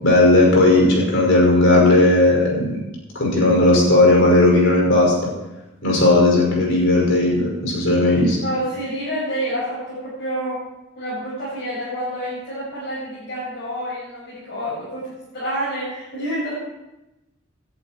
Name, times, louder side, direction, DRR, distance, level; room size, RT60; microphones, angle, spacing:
voice 1, 0.0-2.7 3.1-5.1 5.8-8.4, left 2 dB, 70° left, -1 dB, 5.5 m, -15 dB
voice 2, 8.4-10.6 11.0-16.5, equal, 55° left, -9 dB, 6.3 m, -28 dB
18.5 x 11.0 x 4.5 m, 0.98 s
head